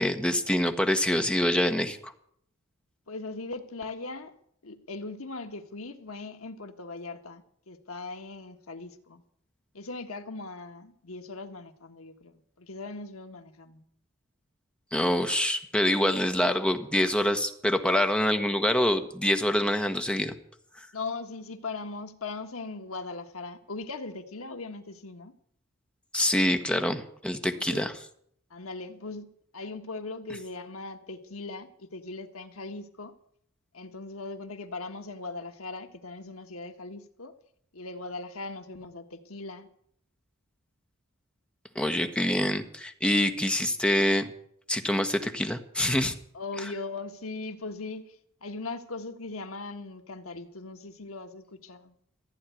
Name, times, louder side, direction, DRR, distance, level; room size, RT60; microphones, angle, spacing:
voice 1, 0.0-2.1 14.9-20.3 26.1-27.9 41.7-44.3 44.7-46.1, left 1 dB, 5° left, 1.2 m, -25 dB
voice 2, 3.1-4.3 4.6-9.2 9.7-13.8 20.9-25.3 27.5-27.9 28.5-33.1 33.7-37.3 37.7-39.7 46.3-51.9, left 3 dB, 75° left, 1.5 m, -39 dB
15.0 x 9.3 x 9.1 m
head